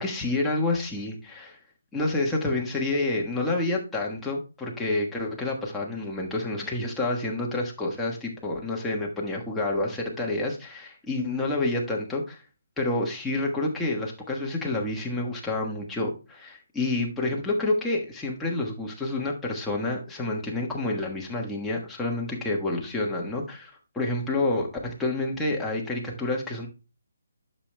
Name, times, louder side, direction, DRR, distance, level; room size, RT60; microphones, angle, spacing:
voice 1, 0.0-1.6 1.9-12.4 12.8-26.7, left 2 dB, 5° left, -2 dB, 1.3 m, -28 dB
11.5 x 6.6 x 2.2 m, 0.33 s
figure-of-eight pair, 145°, 0 cm